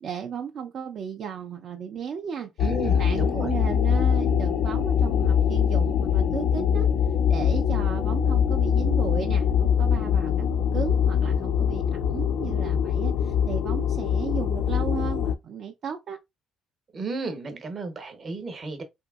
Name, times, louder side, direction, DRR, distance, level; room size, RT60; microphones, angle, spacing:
voice 1, 0.0-2.5 3.0-6.9 7.3-16.2, right 7 dB, 55° right, 0.4 m, -34 dB
sound 1, 2.6-15.3, left 8 dB, 70° left, 0.3 m, -23 dB
voice 2, 2.6-3.5 16.9-18.8, right 3 dB, 40° right, 0.8 m, -33 dB
2.9 x 2.6 x 2.3 m
cardioid pair, 90°, 0 cm